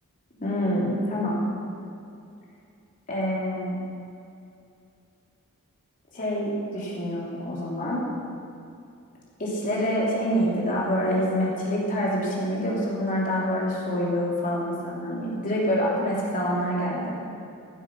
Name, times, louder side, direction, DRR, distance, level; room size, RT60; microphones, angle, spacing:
voice 1, 0.4-1.5 3.1-3.8 6.1-8.1 9.4-17.2, equal, 35° left, -5 dB, 3.3 m, -26 dB
15.5 x 8.2 x 6.0 m, 2.6 s
head